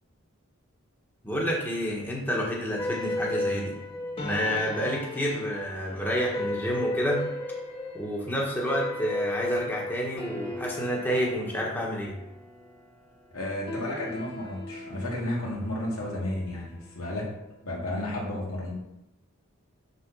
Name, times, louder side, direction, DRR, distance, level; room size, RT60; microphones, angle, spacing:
voice 1, 1.2-3.7 4.2-7.2 7.9-12.2, equal, 10° left, -3 dB, 1.4 m, -29 dB
sound 1, 2.8-17.3, left 1 dB, 25° left, 1.2 m, -36 dB
voice 2, 13.3-17.3 17.6-18.7, left 1 dB, 85° left, -4 dB, 2.6 m, -32 dB
6.9 x 4.5 x 6.2 m, 0.87 s
head